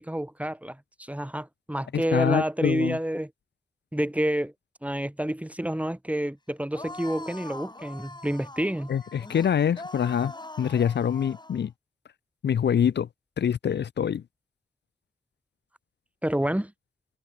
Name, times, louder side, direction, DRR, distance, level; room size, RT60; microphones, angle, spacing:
voice 1, 0.0-3.3 3.9-4.5 4.8-8.9 16.2-16.7, right 1 dB, 10° right, 2.7 m, -29 dB
voice 2, 1.9-3.0 8.9-10.3 10.6-11.7 12.4-13.1 13.4-14.2, left 8 dB, 75° left, 0.6 m, -25 dB
sound 1, 6.7-11.6, left 2 dB, 25° left, 4.8 m, -42 dB
cardioid pair, 65°, 18 cm